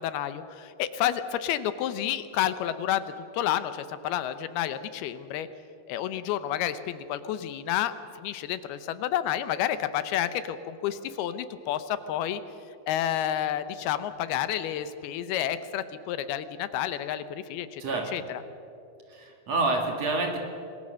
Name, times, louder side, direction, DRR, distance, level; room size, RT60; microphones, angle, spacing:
voice 1, 0.0-3.0 3.3-5.5 5.9-7.9 8.2-12.4 12.9-17.8 18.1-18.4, left 11 dB, 80° left, 12 dB, 2.8 m, -30 dB
voice 2, 17.8-18.1 19.1-20.4, right 2 dB, 50° right, 2 dB, 2.8 m, -28 dB
27.0 x 21.0 x 6.4 m, 2.7 s
omnidirectional pair, 4.5 m